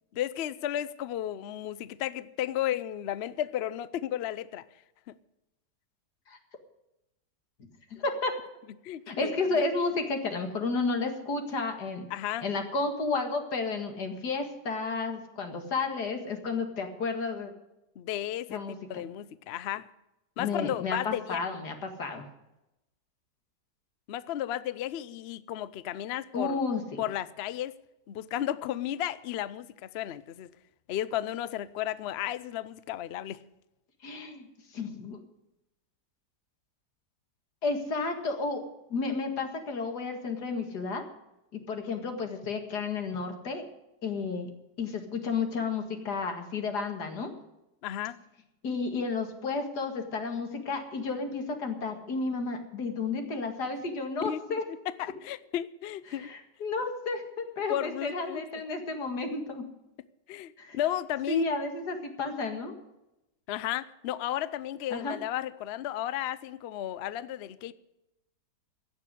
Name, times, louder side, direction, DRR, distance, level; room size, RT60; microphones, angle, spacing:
voice 1, 0.1-4.6 5.1-5.2 8.8-9.6 12.1-12.4 18.0-19.9 20.4-21.4 24.1-26.6 27.0-27.7 28.1-30.5 30.9-33.4 47.8-48.2 54.2-56.3 57.7-58.4 60.3-61.4 63.5-67.7, left 12 dB, 85° left, 0.5 m, -34 dB
voice 2, 7.9-8.4 9.1-12.1 12.4-17.5 18.5-19.0 20.4-22.3 26.3-27.0 34.0-34.4 34.7-35.2 37.6-41.0 41.5-43.7 44.0-44.5 44.8-47.3 48.6-54.6 56.1-59.6 60.6-60.8 61.3-62.7 64.9-65.2, left 3 dB, 65° left, 2.4 m, -32 dB
16.0 x 6.8 x 9.8 m
omnidirectional pair, 1.8 m